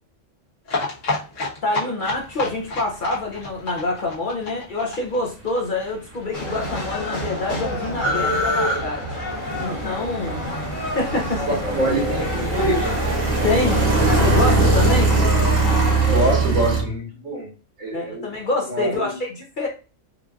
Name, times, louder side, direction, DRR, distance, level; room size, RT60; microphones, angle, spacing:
sound 1, 0.6-6.2 6.5-6.6 6.8-6.9 7.2-7.3, left 3 dB, 70° left, 1.5 m, -29 dB
voice 1, 1.6-9.0 9.6-10.4 10.9-11.4 13.4-13.8 14.1-15.1 17.9-19.7, left 2 dB, 45° left, 0 dB, 0.8 m, -26 dB
sound 2, 6.1-6.2 6.4-16.8, right 2 dB, 35° right, 1.0 m, -21 dB
sound 3, 6.3-16.3, equal, 90° left, 1.7 m, -29 dB
voice 2, 10.2-10.9 11.5-13.0 14.9-15.2 16.1-17.5 17.8-18.3 18.6-19.1, right 1 dB, 80° right, -2 dB, 1.9 m, -26 dB
4.5 x 2.5 x 2.4 m, 0.33 s
omnidirectional pair, 1.3 m